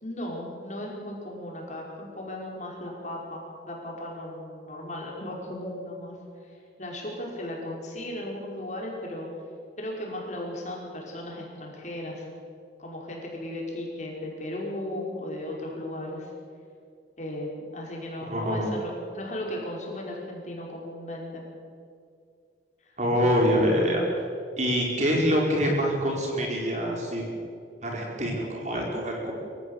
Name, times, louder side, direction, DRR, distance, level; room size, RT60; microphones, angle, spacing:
voice 1, 0.0-6.1 6.4-9.3 9.8-12.3 12.8-16.3 17.2-21.4 22.8-22.9 23.2-23.7, left 1 dB, 40° left, -1 dB, 5.2 m, -36 dB
voice 2, 18.2-18.7 23.0-24.0 24.6-27.2 27.8-29.3, equal, 40° right, 0 dB, 4.9 m, -25 dB
24.5 x 15.5 x 8.1 m, 2.3 s
head